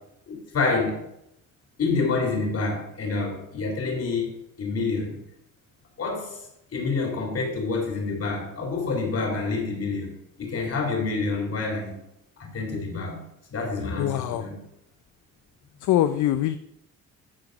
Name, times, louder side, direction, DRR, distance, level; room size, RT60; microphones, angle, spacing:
voice 1, 0.3-1.0 1.8-4.3 4.6-5.2 6.0-6.4 6.7-12.0 12.4-13.2 13.5-14.6, left 3 dB, 55° left, 1 dB, 3.6 m, -27 dB
voice 2, 14.0-14.4 15.8-16.6, left 12 dB, 80° left, 10 dB, 0.6 m, -23 dB
14.0 x 4.8 x 5.2 m, 0.81 s
cardioid pair, 90°, 30 cm